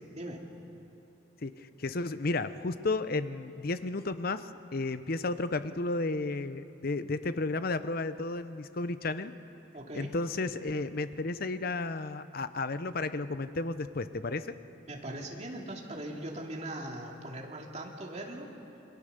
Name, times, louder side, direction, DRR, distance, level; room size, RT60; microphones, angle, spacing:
voice 1, 1.4-9.3 9.9-14.5, left 3 dB, 50° left, 12 dB, 0.8 m, -33 dB
voice 2, 9.7-10.1 14.8-18.5, right 1 dB, 35° right, 0 dB, 2.6 m, -40 dB
27.5 x 22.5 x 6.8 m, 2.9 s
head